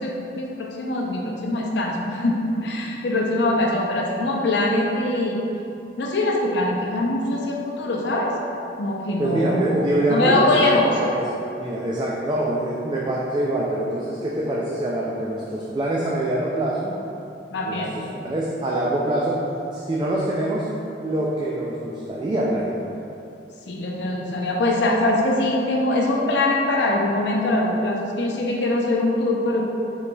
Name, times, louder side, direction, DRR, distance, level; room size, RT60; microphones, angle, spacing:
voice 1, 0.0-5.4 6.0-8.3 8.8-9.8 10.1-10.9 17.5-17.9 23.7-29.6, left 2 dB, 70° left, -1 dB, 0.6 m, -22 dB
voice 2, 9.2-10.6 11.0-17.0 17.6-19.4 19.7-20.7 21.0-22.8, right 1 dB, 25° right, -5 dB, 0.3 m, -25 dB
4.7 x 3.9 x 2.2 m, 2.8 s
head